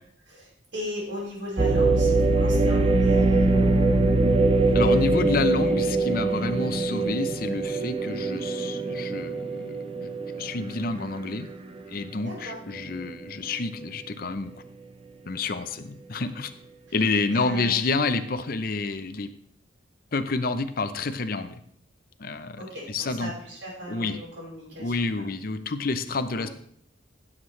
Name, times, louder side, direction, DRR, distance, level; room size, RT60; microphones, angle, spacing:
voice 1, 0.3-4.0 12.2-12.6 16.9-17.0 17.3-17.7 22.5-25.1 26.3-26.5, equal, 75° right, -7 dB, 5.4 m, -37 dB
sound 1, 1.6-11.5 12.0-12.1 12.8-13.1, right 2 dB, 30° right, 0.7 m, -23 dB
voice 2, 4.7-10.1 10.4-11.5 11.9-14.6 15.3-16.5 16.9-19.3 20.1-21.6 22.2-23.3 23.9-24.2 24.8-26.5, left 3 dB, 50° left, 10 dB, 0.7 m, -29 dB
16.0 x 7.4 x 3.2 m, 0.64 s
head